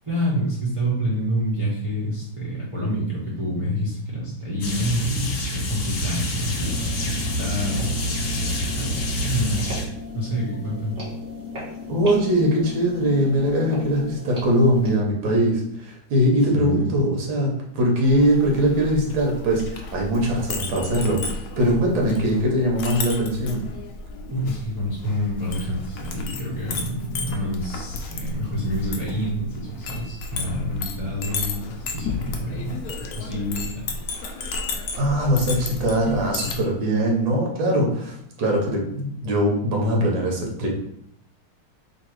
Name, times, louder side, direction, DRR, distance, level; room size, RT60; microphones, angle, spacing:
voice 1, 0.0-9.7 10.1-10.9 16.5-17.0 24.3-32.8 33.1-33.9 34.3-34.5, equal, 55° right, -8 dB, 0.3 m, -27 dB
sound 1, 4.6-9.9, equal, 60° left, 1.1 m, -27 dB
sound 2, 6.6-15.0, left 4 dB, 40° right, 1.6 m, -36 dB
voice 2, 11.9-23.7 34.9-40.7, equal, 70° right, 0 dB, 1.7 m, -21 dB
Chink clink, 18.0-36.6, left 4 dB, 90° left, 0.8 m, -33 dB
3.8 x 2.7 x 4.5 m, 0.73 s
omnidirectional pair, 2.3 m